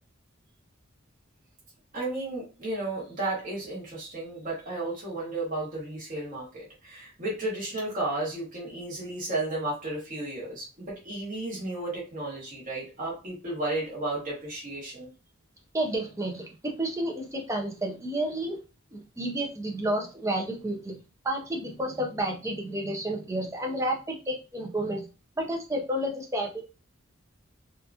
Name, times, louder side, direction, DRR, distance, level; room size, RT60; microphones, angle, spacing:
voice 1, 1.9-15.1, right 2 dB, 35° right, -5 dB, 1.1 m, -33 dB
voice 2, 15.7-18.6 18.9-25.1 25.4-26.6, right 1 dB, 15° right, 1 dB, 0.4 m, -31 dB
2.8 x 2.3 x 2.4 m, 0.32 s
head